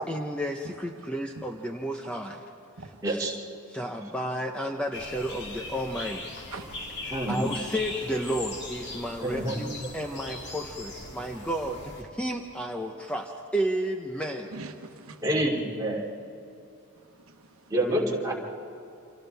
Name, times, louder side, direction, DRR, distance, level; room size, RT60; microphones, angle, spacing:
voice 1, 0.0-2.4 2.8-3.4 3.7-6.3 7.0-11.8 12.2-14.5, equal, 5° left, 2 dB, 0.8 m, -32 dB
voice 2, 3.0-3.3 7.1-7.4 9.2-9.6 15.2-16.0 17.7-18.3, right 1 dB, 15° right, -4 dB, 2.8 m, -27 dB
sound 1, 4.9-12.0, left 2 dB, 50° left, 2.6 m, -39 dB
voice 3, 6.5-7.1 14.5-15.2 17.3-17.7, right 3 dB, 70° right, 6 dB, 1.1 m, -43 dB
30.0 x 26.5 x 3.5 m, 2.7 s
head